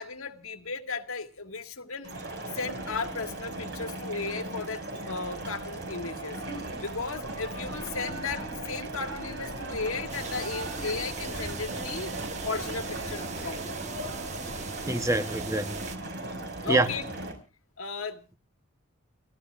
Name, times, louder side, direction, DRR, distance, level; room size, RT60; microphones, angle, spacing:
voice 1, 0.0-2.1 2.6-6.4 6.8-12.1 12.4-13.8 16.6-17.1 17.8-18.2, left 4 dB, 85° left, 1.9 m, -35 dB
sound 1, 2.0-17.3, right 2 dB, 55° right, 5.6 m, -38 dB
sound 2, 6.4-14.8, right 1 dB, 75° right, 6.9 m, -43 dB
sound 3, 10.1-16.0, right 4 dB, 35° right, 1.2 m, -40 dB
voice 2, 14.9-15.7 16.7-16.9, right 1 dB, 15° right, 0.9 m, -25 dB
30.0 x 14.5 x 2.4 m
head